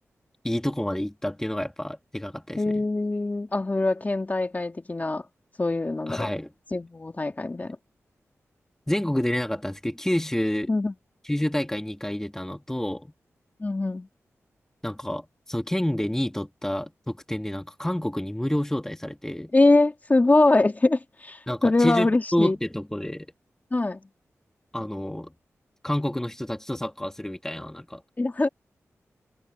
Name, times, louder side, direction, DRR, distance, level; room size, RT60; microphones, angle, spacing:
voice 1, 0.4-2.8 6.1-6.5 8.9-10.7 11.2-13.1 14.8-19.5 21.5-23.3 24.7-25.3 25.8-28.0, left 1 dB, 10° left, 1.9 m, -29 dB
voice 2, 2.6-5.2 5.6-6.3 6.7-7.8 10.7-10.9 13.6-14.1 19.5-22.6 23.7-24.0 28.2-28.5, left 2 dB, 30° left, 2.4 m, -23 dB
cardioid pair, 65°, 5 cm